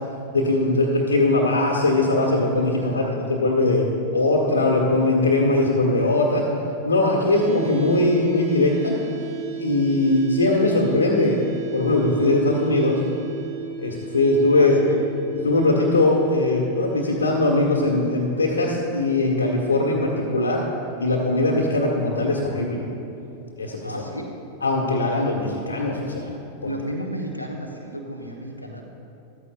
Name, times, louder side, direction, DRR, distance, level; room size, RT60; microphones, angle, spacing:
voice 1, 0.3-3.0 3.3-3.9 4.1-6.5 6.8-9.0 9.6-11.4 11.7-13.0 13.8-14.8 15.4-20.6 21.0-22.8 23.6-23.9 24.6-26.3, left 2 dB, 75° left, -3 dB, 1.5 m, -20 dB
voice 2, 2.7-3.2 14.5-15.0 23.8-24.3 26.6-28.8, right 1 dB, 90° left, -1 dB, 1.1 m, -33 dB
sound 1, 7.3-21.3, right 5 dB, 50° right, 1.6 m, -37 dB
14.5 x 13.5 x 2.5 m, 2.9 s
figure-of-eight pair, 90°, 0 cm